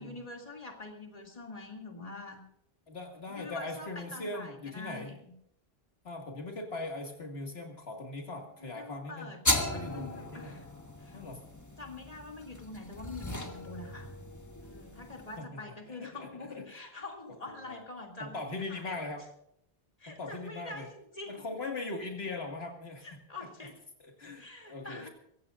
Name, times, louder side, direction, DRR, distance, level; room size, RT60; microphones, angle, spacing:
voice 1, 0.0-2.4 3.3-5.3 8.6-9.4 9.7-10.7 11.0-11.2 11.8-14.1 14.6-18.4 18.7-19.0 20.0-21.4 23.0-23.8 24.4-25.1, left 3 dB, 35° left, 1 dB, 2.7 m, -45 dB
voice 2, 2.9-5.1 6.0-10.6 11.1-11.4 15.4-16.6 17.7-17.8 18.2-19.2 20.1-20.9 21.3-23.1 24.0-25.1, left 2 dB, 75° left, 2 dB, 2.3 m, -40 dB
sound 1, 9.4-15.4, left 1 dB, 15° left, 1.5 m, -36 dB
24.5 x 16.0 x 2.5 m, 0.74 s
omnidirectional pair, 1.1 m